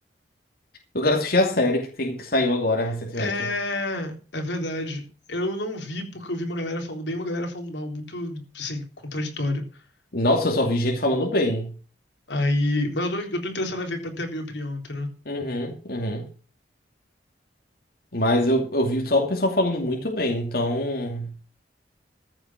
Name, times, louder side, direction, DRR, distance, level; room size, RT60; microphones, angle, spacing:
voice 1, 0.9-3.3 10.1-11.7 15.3-16.3 18.1-21.3, left 1 dB, 55° left, 2.6 m, -23 dB
voice 2, 3.1-8.8 9.1-9.6 12.3-15.1, left 1 dB, 85° left, 3.6 m, -29 dB
15.0 x 7.8 x 6.1 m
head